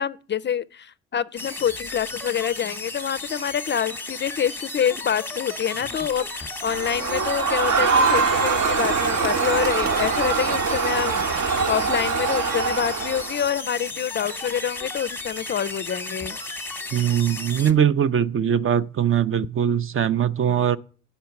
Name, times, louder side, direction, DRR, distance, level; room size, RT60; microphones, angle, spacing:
voice 1, 0.0-16.4, left 8 dB, 35° left, 0.4 m, -27 dB
sound 1, 1.4-17.7, left 2 dB, 5° left, 0.9 m, -34 dB
Crowd, 6.7-13.5, right 5 dB, 60° right, 1.1 m, -23 dB
voice 2, 16.9-20.8, right 9 dB, 45° right, 0.5 m, -21 dB
9.3 x 5.5 x 5.8 m
cardioid pair, 85°, 31 cm